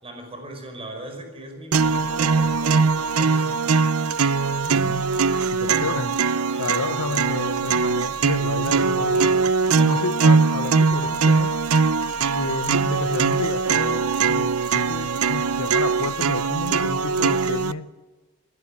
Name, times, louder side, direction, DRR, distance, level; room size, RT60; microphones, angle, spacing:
voice 1, 0.0-3.7 6.5-6.7 9.7-10.1, right 1 dB, 25° right, 5.1 m, -39 dB
sound 1, 0.9-1.0 1.8-1.9 2.2-2.6 3.0-3.5 4.1-6.9, left 3 dB, 40° left, 6.8 m, -49 dB
sound 2, 1.7-17.7, right 5 dB, 70° right, 0.7 m, -21 dB
voice 2, 4.7-5.0 5.5-6.1 6.6-9.4 9.8-11.5 12.3-17.9, left 4 dB, 85° left, 0.9 m, -31 dB
sound 3, 12.0-17.5, right 3 dB, 10° left, 6.5 m, -50 dB
27.0 x 11.5 x 10.0 m
head